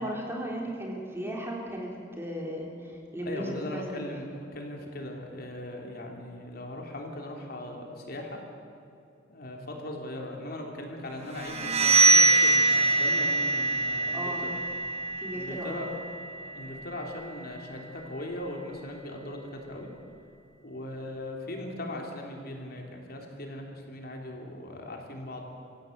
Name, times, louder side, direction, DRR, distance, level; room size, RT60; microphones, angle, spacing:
voice 1, 0.0-4.0 14.1-14.6 15.2-15.9, equal, 15° right, -1 dB, 4.0 m, -36 dB
voice 2, 3.3-8.4 9.3-14.4 15.3-15.9 16.4-19.9 20.6-25.4, left 1 dB, 55° left, 1 dB, 3.4 m, -39 dB
sound 1, 11.3-17.0, right 2 dB, 35° right, 3.4 m, -24 dB
26.0 x 16.0 x 8.1 m, 2.6 s
head